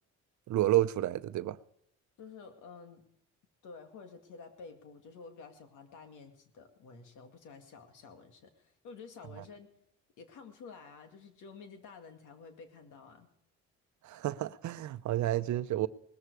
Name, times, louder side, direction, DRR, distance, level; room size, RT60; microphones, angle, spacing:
voice 1, 0.5-1.6 14.0-15.9, right 14 dB, 70° right, 0.7 m, -30 dB
voice 2, 2.2-3.0 3.6-9.7 10.2-13.3, left 5 dB, 85° left, 2.3 m, -51 dB
20.0 x 14.0 x 4.8 m
cardioid pair, 90°, 30 cm